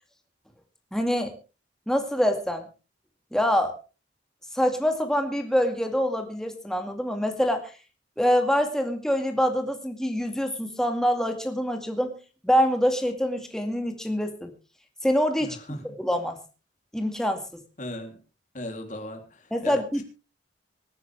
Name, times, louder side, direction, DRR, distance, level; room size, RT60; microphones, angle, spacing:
voice 1, 0.9-1.3 1.9-2.6 3.3-3.7 4.5-7.7 8.2-12.2 12.4-14.5 15.0-15.6 16.0-16.4 16.9-17.6 19.5-20.0, equal, 5° left, 5 dB, 2.2 m, -25 dB
voice 2, 15.4-16.0 17.8-18.2 18.5-19.8, left 1 dB, 40° left, 3 dB, 3.4 m, -36 dB
25.0 x 9.9 x 3.5 m, 0.34 s
head